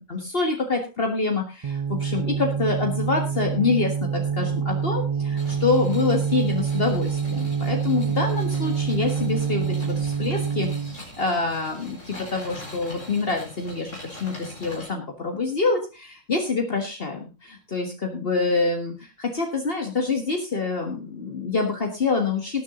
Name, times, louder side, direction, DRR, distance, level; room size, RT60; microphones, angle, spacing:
voice 1, 0.1-22.6, left 3 dB, 50° left, 2 dB, 1.9 m, -26 dB
sound 1, 1.6-11.0, right 6 dB, 40° right, 0.4 m, -26 dB
sound 2, 5.4-14.9, left 2 dB, 80° left, 4.8 m, -42 dB
18.5 x 7.4 x 3.8 m, 0.31 s
omnidirectional pair, 1.3 m